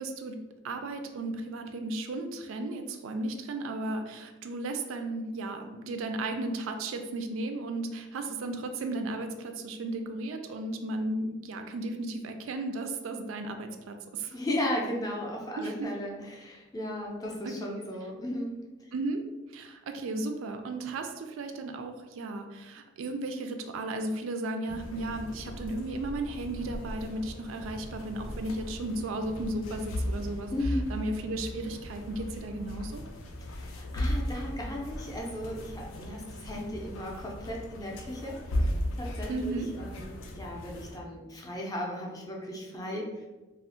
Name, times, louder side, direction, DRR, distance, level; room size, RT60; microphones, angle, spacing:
voice 1, 0.0-14.3 15.6-15.9 17.4-17.9 18.9-19.3 19.5-33.0 39.3-39.7, right 2 dB, 85° right, 6 dB, 0.3 m, -35 dB
voice 2, 14.3-18.6 30.5-30.9 33.4-38.4 39.0-43.2, left 1 dB, 20° left, -1 dB, 0.4 m, -36 dB
sound 1, 24.7-41.0, left 1 dB, 80° left, 0.4 m, -37 dB
2.4 x 2.0 x 3.7 m, 1.2 s
head